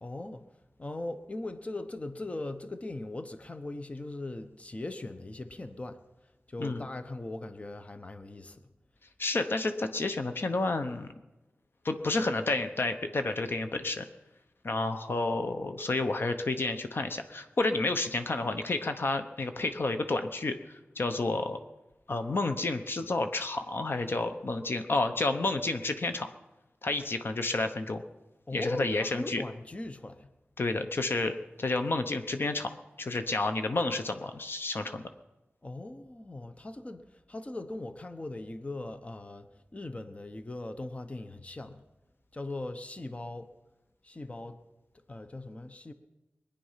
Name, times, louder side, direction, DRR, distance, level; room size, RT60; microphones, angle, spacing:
voice 1, 0.0-0.4 0.8-6.0 6.5-8.7 28.5-30.3 35.6-37.0 37.3-39.5 39.7-41.8 42.3-43.5 44.0-44.6 45.1-45.9, left 2 dB, 30° left, 9 dB, 0.9 m, -39 dB
voice 2, 9.2-11.1 11.8-14.1 14.6-21.6 22.1-26.3 26.8-28.0 28.5-29.4 30.6-32.7 33.0-35.0, left 2 dB, 60° left, 8 dB, 0.9 m, -30 dB
21.5 x 10.0 x 5.7 m, 1.0 s
wide cardioid pair, 90°, 4 cm